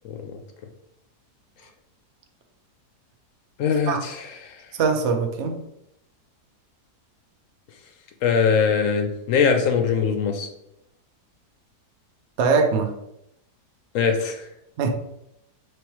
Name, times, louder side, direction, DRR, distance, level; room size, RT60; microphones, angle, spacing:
voice 1, 0.0-0.4 3.6-4.8 8.2-10.5 13.9-14.5, left 6 dB, 70° left, 5 dB, 0.8 m, -22 dB
voice 2, 4.8-5.6 12.4-12.9 14.8-14.9, right 5 dB, 65° right, 4 dB, 0.7 m, -21 dB
5.2 x 3.2 x 3.0 m, 0.81 s
omnidirectional pair, 1.8 m